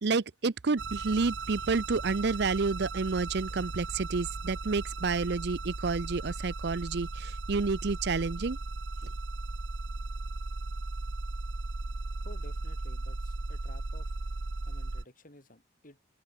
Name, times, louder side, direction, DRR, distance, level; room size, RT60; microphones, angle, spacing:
voice 1, 0.0-8.6, right 4 dB, 60° right, 0.6 m, -30 dB
sound 1, 0.8-15.0, right 3 dB, 90° right, 1.1 m, -37 dB
voice 2, 12.2-14.1 14.6-16.0, left 1 dB, 45° left, 6.9 m, -53 dB
open air
head